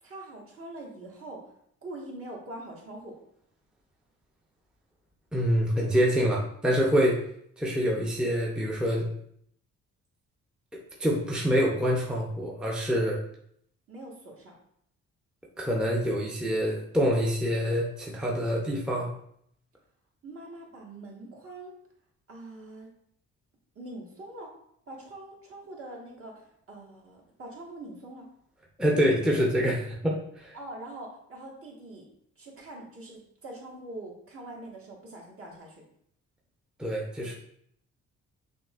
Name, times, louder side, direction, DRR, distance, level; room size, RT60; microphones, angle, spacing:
voice 1, 0.0-1.4 1.8-3.2 13.9-14.5 20.2-21.7 22.3-22.9 23.7-24.5 24.9-28.3 30.5-32.0 32.4-35.8, right 1 dB, 45° right, -2 dB, 1.4 m, -43 dB
voice 2, 5.3-7.2 7.6-9.1 11.0-13.2 15.6-19.1 28.8-30.6 36.8-37.3, equal, 5° right, -3 dB, 0.6 m, -26 dB
5.8 x 2.7 x 2.4 m, 0.69 s
cardioid pair, 90°, 30 cm